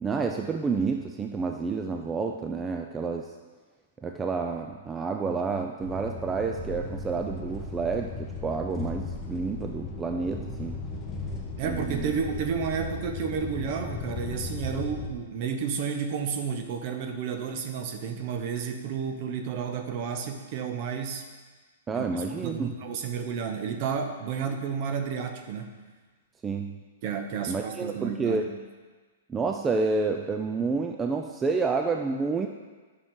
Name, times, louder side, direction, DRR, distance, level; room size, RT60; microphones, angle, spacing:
voice 1, 0.0-3.3 4.0-10.8 11.6-12.1 21.9-22.7 26.4-26.8 27.5-28.5 29.3-32.5, right 4 dB, 15° right, 3 dB, 0.4 m, -29 dB
sound 1, 5.8-15.1, left 3 dB, 15° left, 1.1 m, -36 dB
voice 2, 11.6-21.2 21.9-22.0 22.4-25.8 27.0-28.5, right 6 dB, 45° right, 7 dB, 0.9 m, -31 dB
9.4 x 5.9 x 3.8 m, 1.4 s
hypercardioid pair, 140°, 0 cm